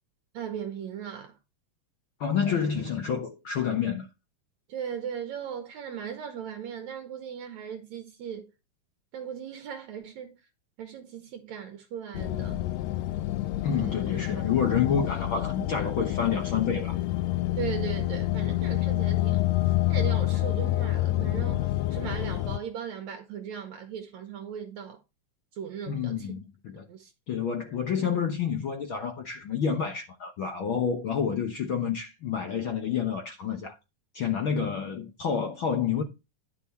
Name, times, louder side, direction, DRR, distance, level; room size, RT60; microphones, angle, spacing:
voice 1, 0.3-1.3 4.7-8.5 9.1-10.3 10.8-12.7 13.7-14.1 17.6-19.4 19.9-25.0 25.5-26.3 26.9-27.1, right 8 dB, 70° right, 2.1 m, -38 dB
voice 2, 2.2-4.1 13.6-17.1 25.9-26.9 27.3-33.8 34.1-36.0, left 7 dB, 65° left, 1.2 m, -29 dB
sound 1, 12.1-22.6, left 15 dB, 85° left, 1.5 m, -28 dB
10.5 x 5.8 x 4.2 m
omnidirectional pair, 3.7 m